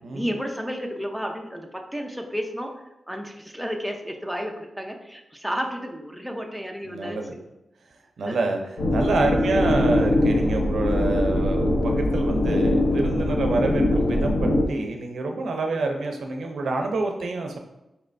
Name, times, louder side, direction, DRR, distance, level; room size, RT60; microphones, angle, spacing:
voice 1, 0.1-2.7 3.1-7.2 8.3-8.4 13.3-13.5 15.7-15.8, equal, ahead, 2 dB, 0.5 m, -32 dB
voice 2, 6.8-7.3 8.2-17.6, right 3 dB, 85° right, 3 dB, 0.5 m, -27 dB
sound 1, 8.8-14.6, left 1 dB, 90° left, 0.7 m, -22 dB
4.4 x 3.2 x 2.6 m, 0.93 s
wide cardioid pair, 85°, 0 cm